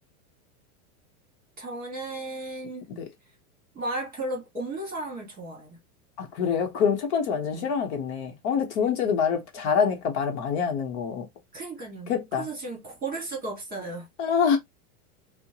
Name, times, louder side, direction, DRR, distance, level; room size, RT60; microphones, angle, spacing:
voice 1, 1.6-2.9 3.7-5.8 7.5-7.7 11.5-14.1, right 2 dB, 20° right, 1.5 m, -35 dB
voice 2, 6.2-11.2 12.1-12.5 14.2-14.6, left 6 dB, 45° left, 0.9 m, -26 dB
4.3 x 2.1 x 2.8 m
supercardioid pair, 155°, 45 cm